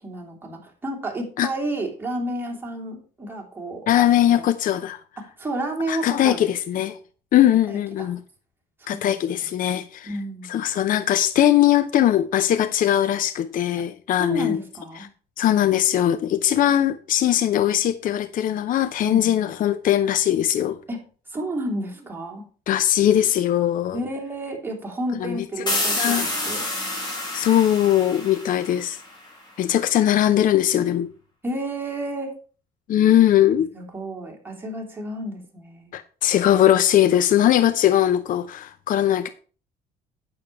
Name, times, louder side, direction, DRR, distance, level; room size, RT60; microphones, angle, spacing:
voice 1, 0.0-3.9 4.2-4.5 5.2-6.5 7.7-8.1 8.8-9.5 10.0-10.5 14.2-15.1 19.0-19.3 20.9-21.0 21.3-22.4 23.9-26.7 31.4-32.3 33.7-35.9, right 1 dB, 10° right, 3.1 m, -31 dB
voice 2, 3.9-5.0 5.9-7.0 7.3-8.2 8.9-10.1 10.5-14.6 15.4-20.8 22.7-24.0 25.2-25.4 25.9-26.3 27.3-29.0 29.6-31.1 32.9-33.7 35.9-39.3, left 11 dB, 55° left, 0.6 m, -20 dB
sound 1, 25.7-29.3, left 1 dB, 25° left, 5.0 m, -28 dB
8.8 x 6.8 x 4.7 m
cardioid pair, 110°, 17 cm